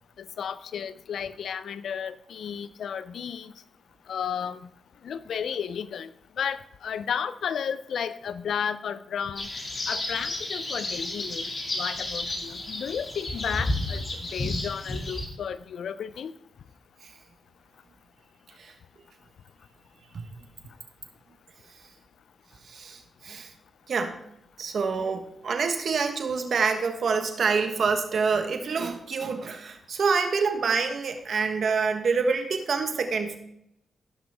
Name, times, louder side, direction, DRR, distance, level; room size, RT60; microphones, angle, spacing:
voice 1, 0.2-3.5 4.1-4.6 5.0-6.1 6.4-9.5 9.9-14.0 14.3-16.3, left 7 dB, 75° left, 15 dB, 0.5 m, -33 dB
sound 1, 9.3-15.3, left 2 dB, 40° left, 2.4 m, -32 dB
voice 2, 22.7-23.5 23.9-24.2 24.6-33.4, right 5 dB, 65° right, 6 dB, 1.4 m, -27 dB
15.5 x 6.1 x 3.5 m, 0.78 s
cardioid pair, 70°, 0 cm